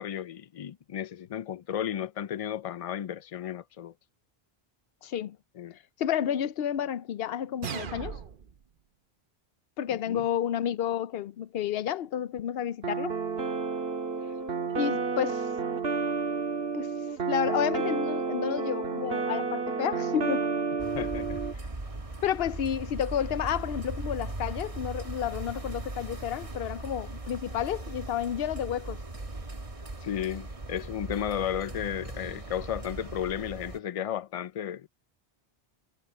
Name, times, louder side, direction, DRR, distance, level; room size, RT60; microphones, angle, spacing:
voice 1, 0.0-3.9 5.6-5.7 9.9-10.2 20.9-21.4 30.0-34.9, left 10 dB, 50° left, 0.4 m, -34 dB
voice 2, 5.0-5.4 5.7-8.2 9.8-13.2 14.7-15.4 16.7-16.9 17.3-20.5 22.2-29.0, left 9 dB, 75° left, 0.8 m, -31 dB
sound 1, 7.6-8.6, right 7 dB, 55° right, 1.0 m, -37 dB
sound 2, 12.8-21.5, right 5 dB, 75° right, 1.8 m, -30 dB
sound 3, 20.8-33.8, right 2 dB, 35° right, 1.5 m, -39 dB
omnidirectional pair, 1.1 m